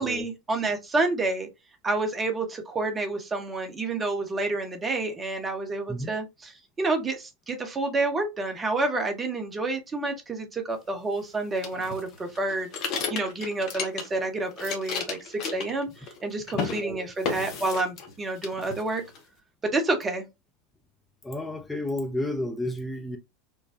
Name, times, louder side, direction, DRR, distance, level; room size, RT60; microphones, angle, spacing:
voice 1, 0.0-1.5 1.8-12.7 13.1-19.0 19.6-20.2, right 2 dB, 20° right, 1.0 m, -29 dB
sound 1, 11.6-14.3 14.5-16.2 16.5-16.8 17.2-18.1 18.4-19.2, left 5 dB, 40° left, 1.0 m, -33 dB
voice 2, 16.7-17.1 21.2-23.2, left 1 dB, 10° left, 0.7 m, -31 dB
4.7 x 2.2 x 2.7 m
figure-of-eight pair, 80°, 0 cm